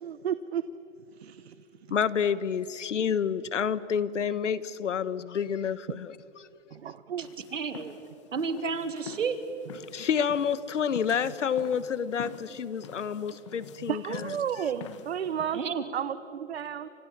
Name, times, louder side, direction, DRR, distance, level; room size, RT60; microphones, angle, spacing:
voice 1, 0.0-0.6 1.2-1.5 6.7-7.3 13.9-15.6 15.9-16.9, right 8 dB, 55° right, 0.9 m, -32 dB
voice 2, 1.9-6.2 9.9-14.4, left 7 dB, 70° left, 1.2 m, -29 dB
sound 1, 7.2-15.7, left 8 dB, 25° left, 1.2 m, -47 dB
voice 3, 7.2-8.0 8.3-9.4 15.5-15.8, right 5 dB, 75° right, 2.8 m, -31 dB
30.0 x 26.5 x 7.4 m
hypercardioid pair, 165°, 38 cm